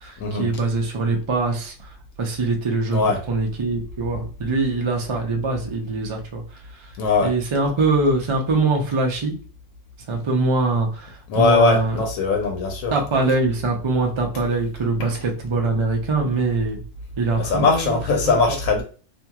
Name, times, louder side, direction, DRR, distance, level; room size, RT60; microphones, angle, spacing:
voice 1, 0.0-6.4 6.7-6.9 7.2-9.3 10.1-12.0 12.9-16.8 17.2-18.6, right 3 dB, 45° right, 1 dB, 0.4 m, -23 dB
voice 2, 7.0-7.3 11.3-12.9 15.0-15.1 17.4-18.8, left 4 dB, 90° left, 3 dB, 1.0 m, -20 dB
2.8 x 2.6 x 2.3 m, 0.38 s
omnidirectional pair, 1.3 m